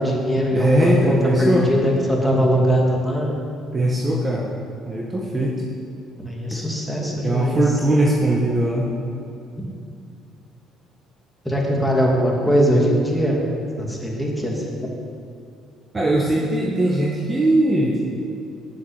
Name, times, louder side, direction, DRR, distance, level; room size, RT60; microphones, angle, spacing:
voice 1, 0.0-3.3 6.2-7.6 11.4-13.4 13.8-14.9, equal, 5° left, -2 dB, 2.8 m, -21 dB
voice 2, 0.5-1.7 3.7-4.5 4.9-5.6 7.2-8.9 15.9-18.0, right 1 dB, 25° right, -3 dB, 1.6 m, -20 dB
9.4 x 7.4 x 8.4 m, 2.4 s
supercardioid pair, 80°, 0 cm